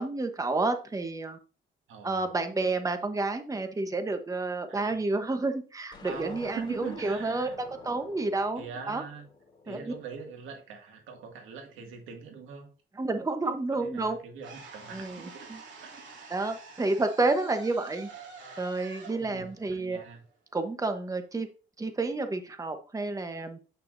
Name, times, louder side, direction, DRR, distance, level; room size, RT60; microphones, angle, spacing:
voice 1, 0.0-1.4 2.0-7.5 7.8-9.0 9.7-9.9 13.0-14.2 14.9-15.6 16.3-18.1 18.6-20.0 20.5-21.5 21.8-23.6, right 3 dB, 15° right, 7 dB, 1.0 m, -30 dB
voice 2, 1.9-2.2 4.7-5.0 6.0-7.5 8.6-9.3 9.6-12.7 13.7-15.5 15.8-16.3 19.2-20.2, right 6 dB, 90° right, 2 dB, 2.0 m, -44 dB
sound 1, 5.9-10.3, left 3 dB, 25° left, 2.5 m, -50 dB
sound 2, 14.4-20.5, right 4 dB, 65° right, 2.9 m, -48 dB
8.4 x 5.8 x 2.6 m, 0.36 s
cardioid pair, 90°, 20 cm